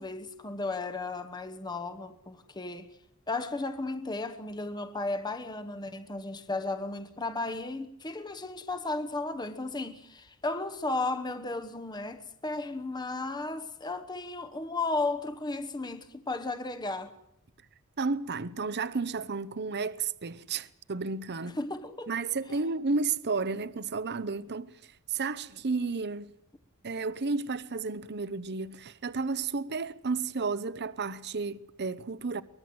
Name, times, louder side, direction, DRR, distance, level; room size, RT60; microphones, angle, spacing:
voice 1, 0.0-2.9 3.3-17.1 21.4-22.1, left 2 dB, 20° left, 1.1 m, -34 dB
voice 2, 18.0-21.6 22.1-24.8 25.1-26.3 26.8-32.4, right 4 dB, 50° right, 0.8 m, -32 dB
23.5 x 20.0 x 7.8 m
head